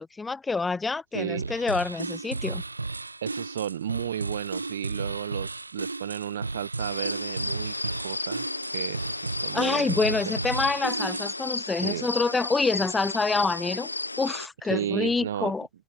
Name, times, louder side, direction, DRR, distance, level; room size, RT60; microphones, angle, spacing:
voice 1, 0.0-2.6 9.5-13.9 14.2-15.7, left 4 dB, 10° left, 1.1 m, -27 dB
voice 2, 1.1-1.5 3.2-8.5 8.7-10.2 11.8-12.1 14.7-15.5, right 10 dB, 65° right, 1.1 m, -33 dB
sound 1, 1.4-11.5, right 3 dB, 80° right, 1.3 m, -34 dB
sound 2, 6.8-14.5, left 2 dB, 85° left, 0.5 m, -33 dB
figure-of-eight pair, 90°, 0 cm